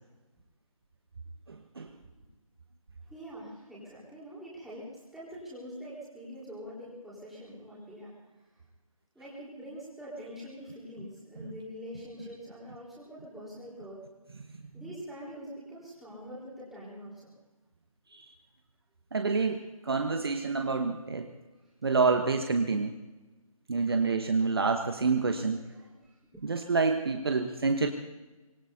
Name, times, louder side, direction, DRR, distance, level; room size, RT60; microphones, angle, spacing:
voice 1, 1.5-1.9 18.2-18.3 19.1-21.3 21.8-22.9 23.7-25.6 26.4-27.9, right 4 dB, 45° right, 6 dB, 1.1 m, -28 dB
voice 2, 3.1-8.1 9.1-14.0 14.7-17.3 21.6-21.7 23.8-24.1 26.0-26.5, equal, ahead, -9 dB, 3.9 m, -44 dB
24.5 x 20.5 x 2.7 m, 1.2 s
figure-of-eight pair, 155°, 18 cm